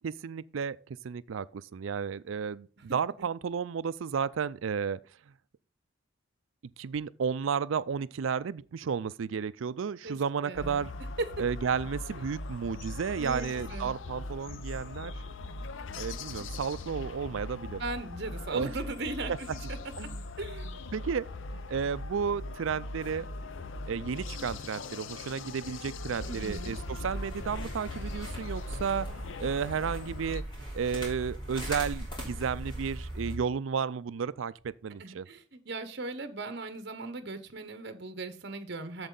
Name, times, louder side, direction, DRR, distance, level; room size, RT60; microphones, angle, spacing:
voice 1, 0.0-5.0 6.8-10.9 11.4-15.1 16.0-17.8 18.5-18.7 20.0-20.2 20.9-21.3 21.5-23.3 23.9-30.4 30.7-35.3, right 6 dB, 75° right, 0.4 m, -33 dB
voice 2, 10.4-10.8 13.2-13.9 16.1-16.2 17.8-19.8 20.4-20.8 26.3-26.7 35.0-39.1, right 2 dB, 55° right, 1.0 m, -38 dB
sound 1, 10.5-30.4, left 2 dB, 70° left, 0.6 m, -40 dB
sound 2, 26.1-33.3, right 1 dB, 25° left, 3.5 m, -40 dB
7.9 x 7.3 x 3.9 m
head